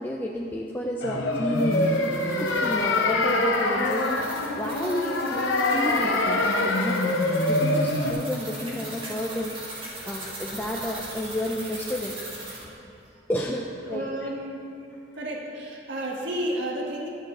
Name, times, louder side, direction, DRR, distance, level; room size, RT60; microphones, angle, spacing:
voice 1, 0.0-7.2 7.5-12.2 13.3-14.3, left 1 dB, 10° left, -1 dB, 0.4 m, -31 dB
sound 1, 1.0-8.1, left 2 dB, 90° left, 0.9 m, -24 dB
sound 2, 1.3-12.7, right 1 dB, 30° right, 1.9 m, -40 dB
voice 2, 13.9-14.7 15.1-17.1, right 1 dB, 75° right, -2 dB, 1.5 m, -32 dB
11.0 x 5.8 x 6.6 m, 2.5 s
head